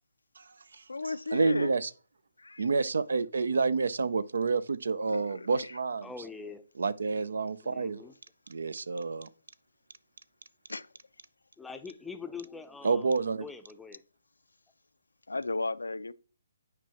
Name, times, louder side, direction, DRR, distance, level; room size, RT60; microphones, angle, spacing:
voice 1, 0.4-1.9 2.6-6.1 6.8-8.0 8.5-9.3 12.8-13.5, right 4 dB, 70° right, 0.4 m, -29 dB
voice 2, 0.9-1.7 2.4-2.7 5.1-5.8 10.7-10.9 15.3-16.1, left 3 dB, 85° left, 0.3 m, -35 dB
voice 3, 6.0-6.7 7.6-8.1 11.6-13.1 13.4-14.0, left 5 dB, 5° left, 0.5 m, -43 dB
9.0 x 4.7 x 2.9 m
figure-of-eight pair, 140°, 0 cm